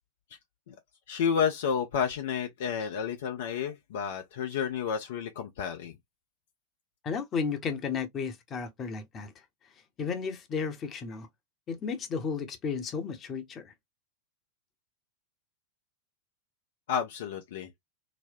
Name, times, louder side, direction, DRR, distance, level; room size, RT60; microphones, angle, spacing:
voice 1, 1.1-5.9 16.9-17.7, left 7 dB, 55° left, 0.6 m, -31 dB
voice 2, 7.0-9.3 10.0-11.3 11.7-13.7, left 5 dB, 30° left, 0.9 m, -33 dB
4.1 x 2.1 x 2.6 m
figure-of-eight pair, 90°, 0 cm